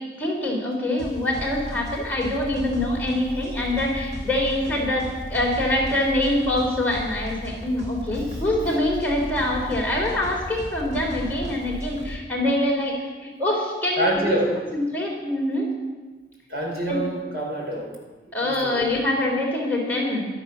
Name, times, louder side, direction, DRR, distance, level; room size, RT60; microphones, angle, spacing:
voice 1, 0.2-14.4 14.7-15.7 16.9-17.0 18.3-20.3, left 1 dB, 10° left, -3 dB, 3.3 m, -25 dB
sound 1, 1.0-12.2, equal, 40° right, 2.5 m, -35 dB
voice 2, 14.0-14.5 16.5-17.9 18.4-18.8, right 1 dB, 65° right, -1 dB, 4.9 m, -26 dB
15.0 x 12.5 x 6.2 m, 1.3 s
head